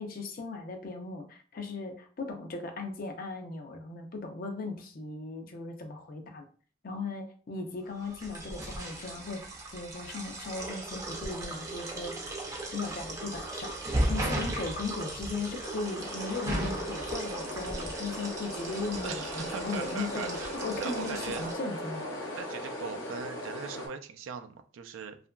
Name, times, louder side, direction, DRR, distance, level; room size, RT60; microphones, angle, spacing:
voice 1, 0.0-6.4 6.8-9.4 9.7-12.1 12.7-13.7 14.1-22.0, left 3 dB, 45° left, 5 dB, 0.4 m, -37 dB
sound 1, 8.0-21.5, right 1 dB, 15° right, 0.5 m, -36 dB
voice 2, 14.1-14.5 19.0-20.5 20.8-21.4 22.3-25.2, right 6 dB, 85° right, 7 dB, 0.3 m, -40 dB
sound 2, 15.2-23.9, left 1 dB, 80° left, 0.8 m, -39 dB
2.8 x 2.4 x 2.2 m, 0.42 s
head